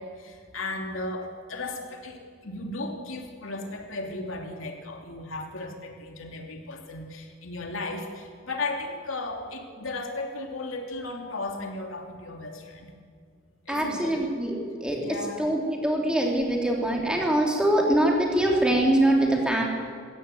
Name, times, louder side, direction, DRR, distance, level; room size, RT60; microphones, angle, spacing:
voice 1, 0.0-12.9 13.7-14.1 15.0-15.5, left 2 dB, 75° left, 2 dB, 2.8 m, -35 dB
voice 2, 13.7-15.0 15.4-19.6, right 1 dB, 5° right, -1 dB, 3.3 m, -23 dB
22.0 x 17.0 x 7.9 m, 2.1 s
head